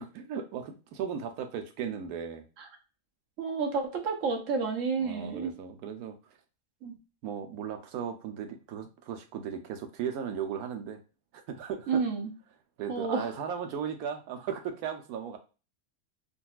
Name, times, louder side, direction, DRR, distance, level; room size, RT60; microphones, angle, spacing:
voice 1, 0.0-2.4 5.0-6.4 7.2-11.0 11.5-12.0 12.8-15.4, right 7 dB, 85° right, 6 dB, 1.1 m, -36 dB
voice 2, 3.4-5.5 6.8-7.0 11.9-12.3 12.9-13.3, right 5 dB, 65° right, 4 dB, 1.1 m, -30 dB
3.8 x 2.6 x 2.3 m, 0.34 s
omnidirectional pair, 1.6 m